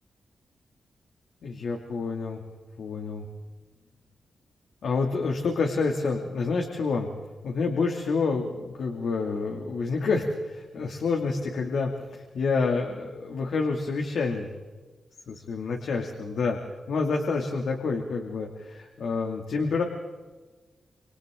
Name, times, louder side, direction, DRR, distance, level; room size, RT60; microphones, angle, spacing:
voice 1, 1.4-2.4 2.8-3.2 4.8-7.1 7.4-14.5 15.3-16.6 16.9-19.8, left 4 dB, 70° left, 1 dB, 2.5 m, -28 dB
27.5 x 27.5 x 3.8 m, 1.3 s
wide cardioid pair, 145°, 0 cm